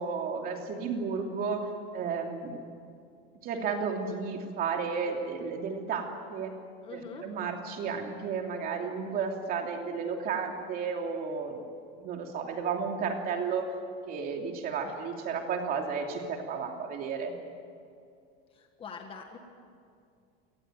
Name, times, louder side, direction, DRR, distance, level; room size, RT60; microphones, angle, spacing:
voice 1, 0.0-1.7 1.9-2.6 3.4-6.5 6.9-11.6 11.9-13.6 14.1-17.3, right 5 dB, 30° right, 3 dB, 3.0 m, -33 dB
voice 2, 6.8-7.3 14.8-14.9 18.5-19.4, left 5 dB, 20° left, 4 dB, 1.6 m, -44 dB
27.5 x 19.5 x 9.2 m, 2.4 s
cardioid pair, 175°, 29 cm